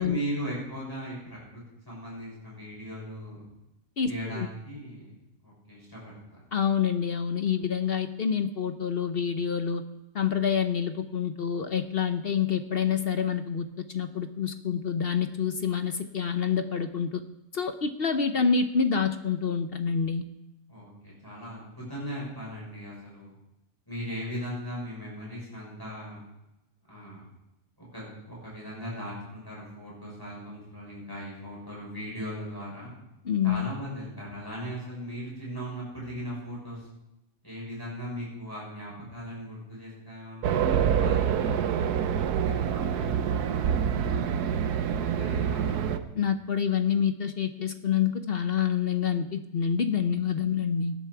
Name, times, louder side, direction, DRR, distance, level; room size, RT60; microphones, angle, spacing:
voice 1, 0.0-3.4 4.1-5.1 5.4-6.4 20.7-23.3 23.9-26.2 26.9-27.3 27.8-32.9 33.4-36.9 37.4-41.6 42.4-44.8 45.2-45.9, equal, 15° left, -5 dB, 6.5 m, -38 dB
voice 2, 4.0-4.5 6.5-9.8 10.1-17.2 17.5-20.2 33.2-33.7 46.1-50.9, left 7 dB, 50° left, 9 dB, 0.8 m, -27 dB
Race car auto racing, 40.4-46.0, right 8 dB, 85° right, 1.3 m, -26 dB
18.5 x 10.5 x 4.7 m, 0.92 s
omnidirectional pair, 1.6 m